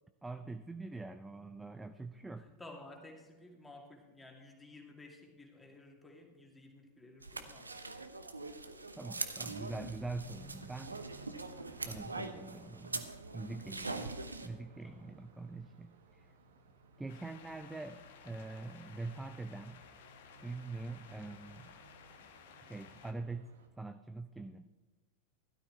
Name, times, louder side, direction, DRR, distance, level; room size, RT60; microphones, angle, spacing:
voice 1, 0.2-2.5 9.0-11.1 11.8-13.1 13.3-16.3 17.0-19.8 20.4-21.8 22.6-23.5 23.8-24.7, right 3 dB, 5° right, 9 dB, 0.5 m, -44 dB
voice 2, 2.6-7.7 13.5-13.8 14.8-15.1, left 2 dB, 10° left, 1 dB, 2.4 m, -54 dB
sound 1, 7.2-14.5, right 3 dB, 80° right, 0.9 m, -43 dB
sound 2, 9.5-23.7, right 2 dB, 65° right, 1.5 m, -58 dB
sound 3, 17.1-23.1, left 7 dB, 55° left, 1.3 m, -57 dB
16.5 x 12.5 x 3.3 m, 1.3 s
figure-of-eight pair, 90°, 0 cm